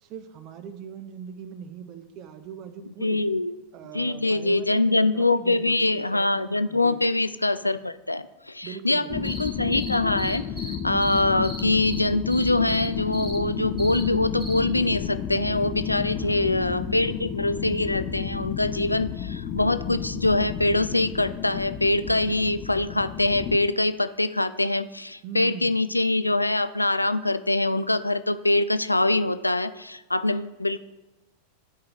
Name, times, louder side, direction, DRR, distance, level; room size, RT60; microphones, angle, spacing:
voice 1, 0.0-3.2 3.7-6.0 6.7-7.0 8.6-9.3 16.1-16.6 25.2-25.8, right 8 dB, 40° right, 10 dB, 0.7 m, -41 dB
voice 2, 3.0-3.5 3.9-30.8, left 2 dB, 85° left, 13 dB, 0.3 m, -24 dB
sound 1, 9.1-23.6, left 8 dB, 30° left, 0.6 m, -32 dB
sound 2, 9.2-10.7 11.0-12.0 12.3-12.9 13.1-13.4 13.8-14.0 14.4-14.6, right 2 dB, 15° right, 2.0 m, -38 dB
12.0 x 5.0 x 2.9 m, 1.0 s
figure-of-eight pair, 90°, 0 cm